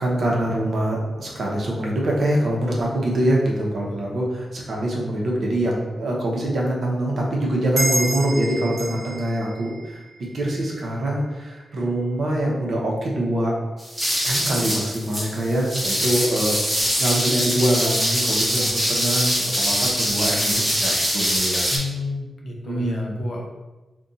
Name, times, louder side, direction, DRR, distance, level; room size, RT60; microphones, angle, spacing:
voice 1, 0.0-10.0 10.3-13.5 14.2-21.7 22.6-23.1, right 1 dB, 65° right, -2 dB, 0.8 m, -24 dB
sound 1, 7.8-10.9, right 1 dB, 40° right, 0.9 m, -29 dB
sound 2, 13.8-21.8, equal, 10° right, 0.8 m, -23 dB
voice 2, 21.7-23.5, left 3 dB, 65° left, -1 dB, 0.6 m, -31 dB
2.5 x 2.2 x 3.9 m, 1.1 s
wide cardioid pair, 100°, 0 cm